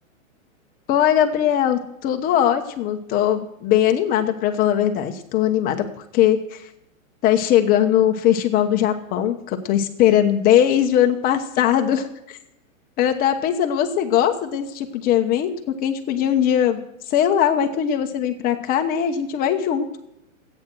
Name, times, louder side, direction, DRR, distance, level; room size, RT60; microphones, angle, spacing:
voice 1, 0.9-5.9 6.1-6.6 7.2-12.4 13.0-16.8 17.1-19.9, left 10 dB, 20° left, 6 dB, 1.0 m, -20 dB
14.0 x 9.0 x 6.1 m, 0.84 s
hypercardioid pair, 155°, 40 cm